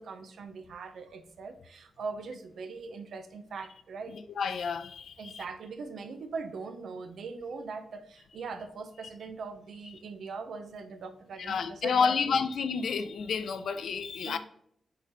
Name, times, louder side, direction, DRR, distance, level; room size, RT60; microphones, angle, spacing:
voice 1, 0.0-4.1 5.2-12.4 14.2-14.4, right 4 dB, 80° right, 0.7 m, -41 dB
voice 2, 4.1-5.4 11.4-14.4, left 5 dB, 80° left, 0.5 m, -30 dB
6.5 x 4.0 x 4.1 m
wide cardioid pair, 130°, 0 cm